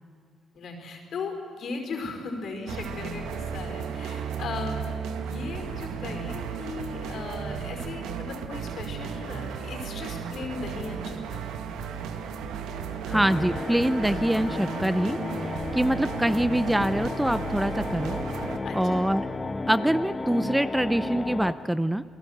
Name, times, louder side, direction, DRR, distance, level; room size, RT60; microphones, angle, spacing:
voice 1, 0.5-4.9 5.1-11.4 18.6-19.1, left 3 dB, 60° left, 4 dB, 4.8 m, -37 dB
sound 1, 2.7-18.6, right 6 dB, 90° right, 1.7 m, -35 dB
sound 2, 13.1-21.5, left 3 dB, 25° left, 1.3 m, -33 dB
voice 2, 13.1-15.2 15.7-18.2 18.7-19.3 19.7-22.0, right 1 dB, 5° right, 14 dB, 0.6 m, -24 dB
28.5 x 18.5 x 8.0 m, 2.2 s
cardioid pair, 90°, 0 cm